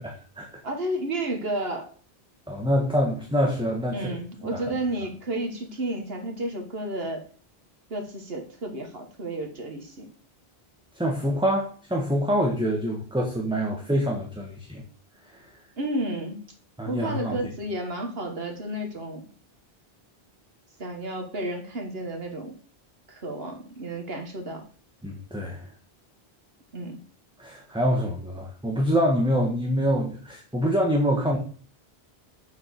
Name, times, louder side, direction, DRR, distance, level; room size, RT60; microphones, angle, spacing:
voice 1, 0.0-0.5 2.5-4.1 4.4-4.6 10.9-14.8 15.3-15.4 16.8-17.4 25.0-25.7 27.4-31.4, equal, 5° right, 0 dB, 1.4 m, -25 dB
voice 2, 0.6-1.9 3.9-7.2 7.9-10.1 15.8-16.4 16.9-19.2 20.8-22.5 23.1-24.6 26.7-27.0, right 1 dB, 75° right, 4 dB, 1.7 m, -32 dB
7.2 x 5.7 x 6.8 m, 0.42 s
omnidirectional pair, 1.0 m